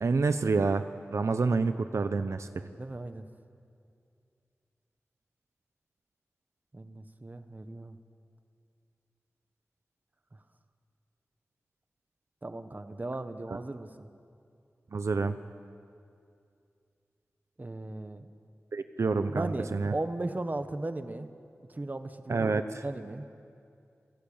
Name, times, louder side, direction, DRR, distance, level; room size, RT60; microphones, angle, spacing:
voice 1, 0.0-0.8 1.1-2.5 14.9-15.4 18.7-19.9 22.3-22.8, right 4 dB, 70° right, 9 dB, 0.8 m, -28 dB
voice 2, 2.8-3.2 6.7-8.0 12.4-14.1 17.6-18.3 19.3-21.3 21.7-23.3, right 2 dB, 35° right, 9 dB, 1.3 m, -37 dB
27.5 x 17.5 x 8.8 m, 2.4 s
wide cardioid pair, 75°, 5 cm